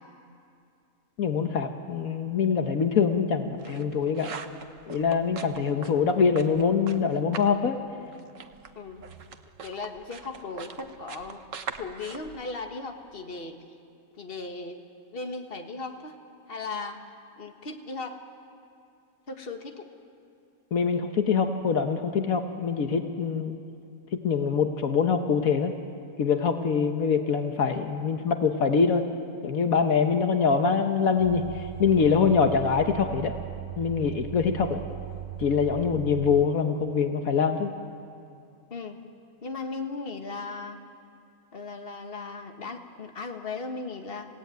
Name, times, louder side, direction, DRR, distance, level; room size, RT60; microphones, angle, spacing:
voice 1, 1.2-4.4 4.9-7.8 20.7-23.6 24.2-25.7 26.2-29.1 29.4-33.3 33.8-34.8 35.4-37.7, left 6 dB, 75° left, 6 dB, 1.5 m, -24 dB
sound 1, 3.3-7.6 7.9-13.2, right 6 dB, 65° right, 1.4 m, -43 dB
voice 2, 8.8-9.1 9.6-11.4 11.8-13.6 14.2-14.8 15.1-16.2 16.5-17.0 17.4-18.2 19.3-19.9 38.7-39.0 39.4-40.8 41.5-44.3, left 3 dB, 40° left, 4 dB, 1.8 m, -37 dB
sound 2, 31.2-36.5, right 12 dB, 85° right, 1.5 m, -38 dB
28.5 x 17.0 x 9.2 m, 2.4 s
omnidirectional pair, 1.5 m